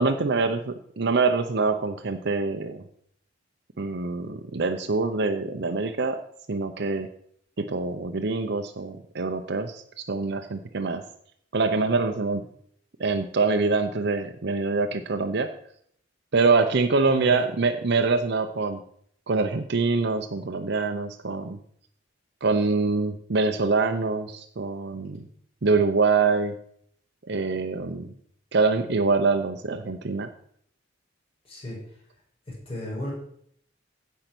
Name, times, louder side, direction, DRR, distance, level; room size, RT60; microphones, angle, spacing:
voice 1, 0.0-2.8 3.8-6.2 6.5-7.1 7.6-11.0 11.5-12.4 13.0-15.5 16.3-18.8 19.3-21.6 22.4-25.2 25.6-26.5 27.3-28.1 28.5-30.3, right 4 dB, 60° right, 6 dB, 0.7 m, -25 dB
voice 2, 17.0-17.4 31.5-31.8 32.5-33.1, left 1 dB, 30° left, -6 dB, 5.9 m, -34 dB
15.5 x 5.7 x 6.0 m, 0.67 s
head